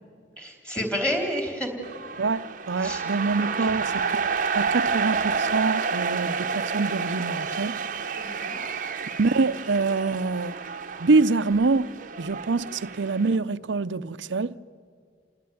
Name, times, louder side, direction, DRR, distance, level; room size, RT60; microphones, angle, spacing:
voice 1, 0.4-1.8 2.8-3.0 3.4-3.5 8.2-8.6, equal, 5° left, 3.8 m, -29 dB
sound 1, 1.8-13.4, right 5 dB, 45° right, 0.9 m, -30 dB
voice 2, 2.2-7.8 9.2-10.6 11.0-14.5, right 3 dB, 80° right, 0.6 m, -25 dB
29.0 x 19.5 x 9.4 m
head